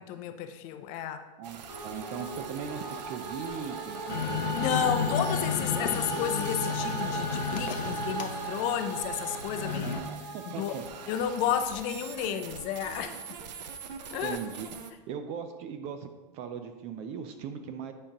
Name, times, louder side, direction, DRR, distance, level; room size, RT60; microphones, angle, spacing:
voice 1, 0.0-1.2 4.5-10.0 10.5-10.8 11.1-13.2 14.1-14.4, left 9 dB, 35° left, 8 dB, 0.6 m, -32 dB
voice 2, 1.4-5.2 9.6-10.0 10.3-10.8 14.2-14.7 15.1-17.9, right 7 dB, 30° right, 8 dB, 0.4 m, -39 dB
sound 1, 1.4-14.9, right 6 dB, 90° right, 0.8 m, -45 dB
sound 2, 1.7-11.9, right 3 dB, 65° right, 1.9 m, -38 dB
sound 3, 4.1-10.0, left 6 dB, 90° left, 0.9 m, -33 dB
9.7 x 5.1 x 2.9 m, 1.2 s
supercardioid pair, 145°, 21 cm